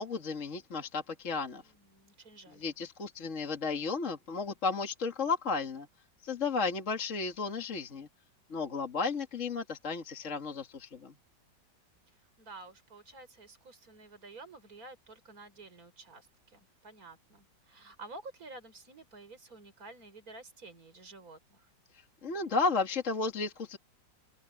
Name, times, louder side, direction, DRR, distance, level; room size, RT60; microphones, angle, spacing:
voice 1, 0.0-1.6 2.6-5.9 6.2-8.1 8.5-11.1 21.9-23.8, left 4 dB, 45° left, 2.2 m, -33 dB
voice 2, 1.6-2.7 12.1-21.7, right 3 dB, 50° right, 5.7 m, -51 dB
omnidirectional pair, 1.9 m